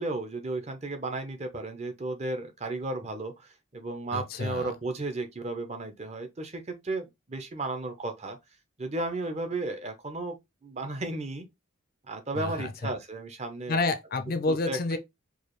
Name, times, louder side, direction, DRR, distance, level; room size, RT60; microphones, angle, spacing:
voice 1, 0.0-8.4 8.8-10.4 10.6-11.5 12.1-13.8 14.5-14.8, right 2 dB, 30° right, 0.7 m, -34 dB
voice 2, 4.1-4.7 12.4-12.9 13.7-15.0, left 3 dB, 45° left, 0.5 m, -29 dB
4.7 x 2.4 x 3.0 m
head